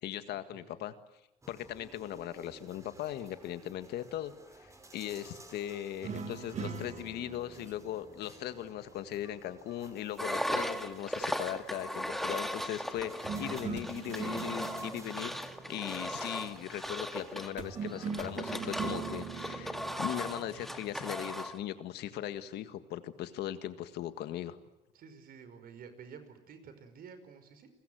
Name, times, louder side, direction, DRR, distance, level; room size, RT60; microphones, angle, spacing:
voice 1, 0.0-0.9 1.5-15.3 15.7-24.6, left 12 dB, 80° left, 11 dB, 1.9 m, -39 dB
voice 2, 0.5-0.8 24.9-27.7, right 6 dB, 60° right, 10 dB, 5.2 m, -51 dB
sound 1, 1.4-18.4, right 2 dB, 20° right, 5.1 m, -55 dB
sound 2, 6.0-9.4 13.2-16.7 17.6-21.4, right 6 dB, 45° right, 3.4 m, -42 dB
Engine, 10.2-21.6, equal, ahead, 1.9 m, -37 dB
30.0 x 22.0 x 7.9 m, 0.88 s
cardioid pair, 110°, 17 cm